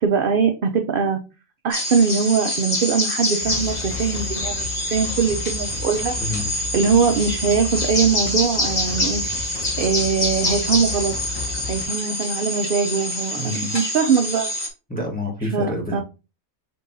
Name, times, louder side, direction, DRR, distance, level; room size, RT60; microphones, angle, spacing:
voice 1, 0.0-1.2 1.6-6.1 6.7-9.2 9.8-11.1 11.7-14.5 15.5-16.0, right 6 dB, 65° right, 5 dB, 0.5 m, -21 dB
sound 1, 1.7-14.7, left 1 dB, 30° left, 1.3 m, -26 dB
sound 2, 3.4-11.9, left 4 dB, 85° left, 1.7 m, -33 dB
voice 2, 6.2-6.5 13.4-13.7 14.9-16.0, left 1 dB, 5° left, -2 dB, 1.1 m, -28 dB
5.3 x 3.4 x 2.6 m, 0.30 s
omnidirectional pair, 1.4 m